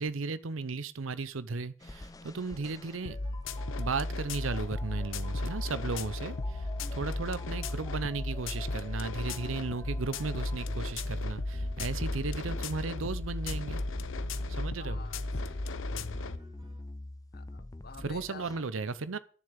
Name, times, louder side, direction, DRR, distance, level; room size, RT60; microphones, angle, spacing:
voice 1, 0.0-3.2 3.8-6.7 6.9-13.8 14.5-15.0 18.0-19.2, right 4 dB, 90° right, 0.7 m, -35 dB
sound 1, 1.8-18.6, left 1 dB, 20° left, 0.5 m, -47 dB
sound 2, 2.6-16.8, left 1 dB, 25° right, 1.9 m, -59 dB
sound 3, 3.0-16.4, left 2 dB, 80° left, 0.9 m, -35 dB
voice 2, 14.8-16.1 17.3-18.5, left 5 dB, 50° left, 1.1 m, -50 dB
10.0 x 7.2 x 8.0 m
head